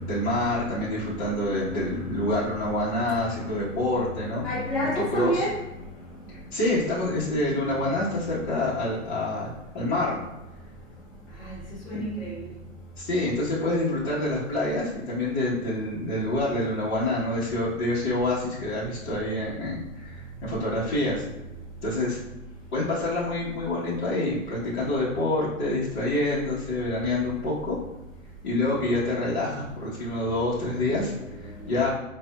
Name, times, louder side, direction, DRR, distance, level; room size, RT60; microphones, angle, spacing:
voice 1, 0.0-4.4 5.1-5.4 6.3-10.2 11.9-12.0 13.0-21.2 21.8-22.2 22.7-27.8 28.4-31.9, left 2 dB, 35° left, -9 dB, 1.1 m, -27 dB
voice 2, 1.2-2.5 4.4-5.5 11.4-11.5 11.8-12.4 30.7-31.0, equal, ahead, -12 dB, 0.4 m, -30 dB
4.9 x 2.6 x 2.3 m, 0.99 s
hypercardioid pair, 125°, 41 cm